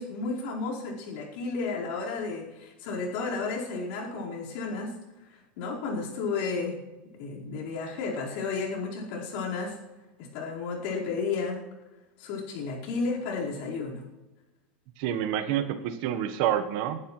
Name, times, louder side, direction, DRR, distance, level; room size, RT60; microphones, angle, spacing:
voice 1, 0.0-4.9 5.3-6.8 7.2-9.8 10.2-11.6 12.2-14.0, left 4 dB, 65° left, -3 dB, 4.7 m, -32 dB
voice 2, 15.0-17.0, right 10 dB, 60° right, 9 dB, 1.3 m, -28 dB
20.5 x 11.5 x 3.2 m, 1.1 s
supercardioid pair, 135°, 6 cm